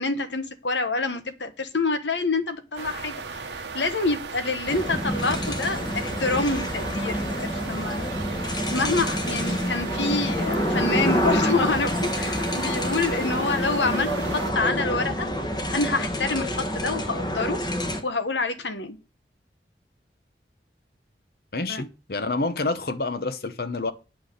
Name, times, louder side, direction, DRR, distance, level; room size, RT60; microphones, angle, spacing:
voice 1, 0.0-15.3 15.7-17.6 18.0-19.0 21.7-21.8, left 3 dB, 85° left, 1.3 m, -27 dB
sound 1, 2.8-14.5, right 4 dB, 80° right, 1.0 m, -36 dB
sound 2, 4.7-18.0, equal, 25° left, 1.3 m, -27 dB
voice 2, 21.5-23.9, left 3 dB, 55° left, 0.9 m, -28 dB
9.0 x 5.8 x 6.7 m
head